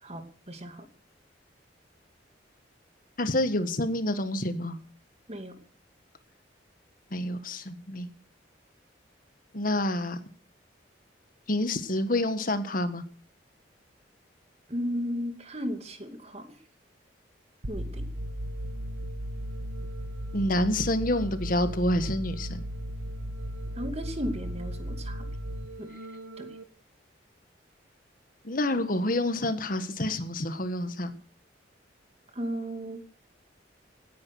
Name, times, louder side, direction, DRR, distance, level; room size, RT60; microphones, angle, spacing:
voice 1, 0.0-0.9 5.3-5.5 14.7-16.5 17.7-18.1 23.8-25.3 25.8-25.9 26.4-26.5 32.3-33.0, equal, 35° right, 7 dB, 2.5 m, -35 dB
voice 2, 3.2-4.8 7.1-8.1 9.5-10.2 11.5-13.0 20.3-22.6 28.4-31.2, left 1 dB, 50° left, 10 dB, 1.7 m, -28 dB
sound 1, 17.6-26.6, equal, 90° right, 1.7 m, -36 dB
18.0 x 10.5 x 6.6 m, 0.42 s
head